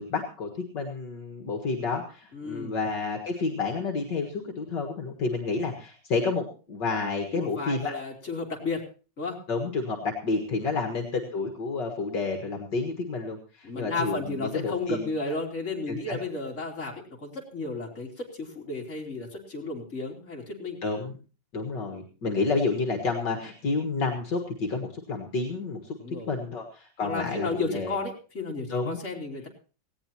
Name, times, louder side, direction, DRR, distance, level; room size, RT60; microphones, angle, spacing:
voice 1, 0.0-7.9 9.5-15.1 15.9-16.2 20.8-21.2 21.5-28.0 28.7-29.0, left 4 dB, 70° left, 3 dB, 2.4 m, -30 dB
voice 2, 2.3-2.7 7.3-8.8 9.2-9.4 10.6-10.8 13.6-16.9 17.2-20.8 26.0-26.4 27.0-29.5, left 3 dB, 40° left, 0 dB, 3.5 m, -33 dB
18.0 x 17.0 x 3.0 m, 0.36 s
omnidirectional pair, 2.0 m